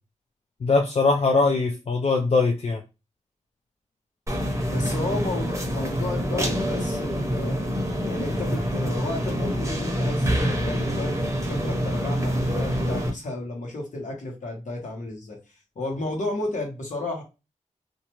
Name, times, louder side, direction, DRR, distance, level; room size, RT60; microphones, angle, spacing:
voice 1, 0.6-2.8, left 3 dB, 55° left, 2 dB, 0.4 m, -21 dB
sound 1, 4.3-13.1, equal, 25° right, 0.7 m, -26 dB
voice 2, 4.7-7.7 8.0-11.2 11.4-15.4 15.7-17.2, left 2 dB, 75° left, -1 dB, 1.1 m, -32 dB
2.5 x 2.2 x 2.9 m, 0.27 s
wide cardioid pair, 115°, 13 cm